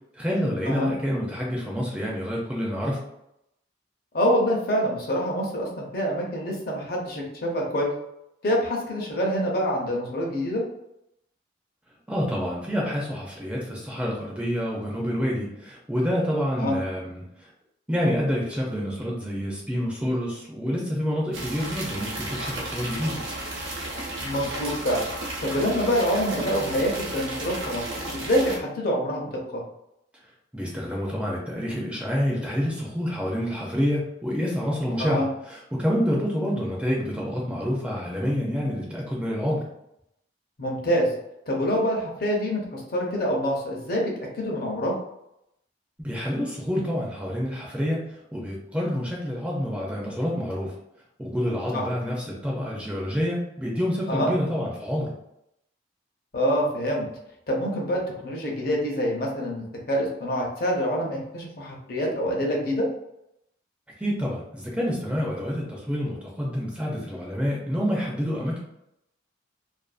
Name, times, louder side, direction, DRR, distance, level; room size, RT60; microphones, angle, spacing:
voice 1, 0.1-3.0 12.1-17.5 17.9-23.2 30.5-39.7 46.0-50.7 51.2-55.1 64.0-68.6, equal, 5° right, -4 dB, 0.4 m, -28 dB
voice 2, 4.1-7.9 8.4-10.6 16.6-16.8 24.2-25.0 25.4-27.8 28.1-29.6 35.0-35.3 40.6-41.1 41.5-45.0 51.7-51.8 54.1-54.3 56.3-57.1 57.5-62.9, equal, 50° left, -1 dB, 0.6 m, -26 dB
sound 1, 21.3-28.6, right 1 dB, 90° right, 0.7 m, -33 dB
2.5 x 2.3 x 2.4 m, 0.81 s
head